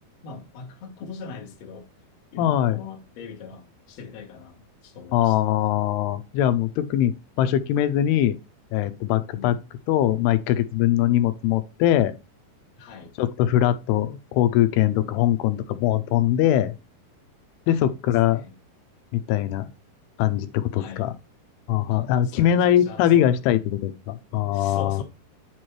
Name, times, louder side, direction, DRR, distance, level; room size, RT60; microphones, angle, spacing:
voice 1, 0.2-1.9 2.3-5.5 9.2-9.6 12.8-13.1 17.7-17.8 18.3-18.5 20.8-21.1 21.9-23.3 24.5-25.0, left 5 dB, 60° left, 1.9 m, -41 dB
voice 2, 2.4-2.8 5.1-8.4 8.7-9.6 9.9-12.1 13.2-16.7 17.7-18.5 19.1-19.7 20.2-21.1 21.7-25.0, left 11 dB, 90° left, 2.7 m, -22 dB
9.6 x 4.4 x 3.2 m
omnidirectional pair, 4.6 m